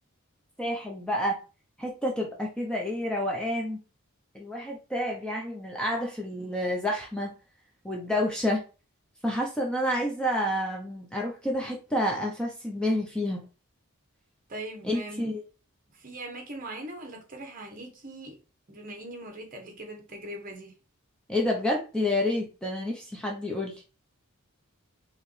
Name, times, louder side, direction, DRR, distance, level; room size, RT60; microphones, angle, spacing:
voice 1, 0.6-1.4 1.8-3.8 4.3-7.3 7.8-8.6 9.2-13.4 14.8-15.4 21.3-23.8, left 1 dB, 5° left, 0.6 m, -29 dB
voice 2, 14.5-15.3 15.9-18.4 18.7-20.7, right 1 dB, 40° right, 1.1 m, -41 dB
4.7 x 3.0 x 3.2 m
head